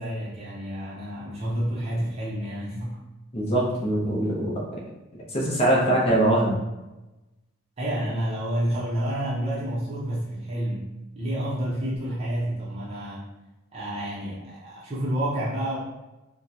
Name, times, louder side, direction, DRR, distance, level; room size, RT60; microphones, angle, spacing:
voice 1, 0.0-3.0 7.8-13.3 13.7-15.8, right 1 dB, 30° right, -8 dB, 0.7 m, -29 dB
voice 2, 3.3-4.8 5.3-6.6, right 1 dB, 25° left, -4 dB, 0.7 m, -23 dB
2.9 x 2.2 x 3.9 m, 1.0 s
head